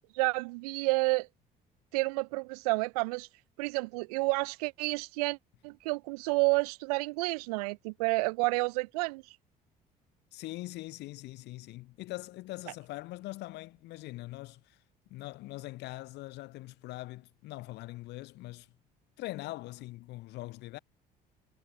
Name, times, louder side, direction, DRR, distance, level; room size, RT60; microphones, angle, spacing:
voice 1, 0.1-1.3 1.9-3.3 3.6-5.4 5.6-9.2, right 26 dB, 65° right, 0.6 m, -30 dB
voice 2, 10.3-14.8 15.1-18.7 19.2-20.8, left 19 dB, 55° left, 0.9 m, -42 dB
figure-of-eight pair, 50°, 21 cm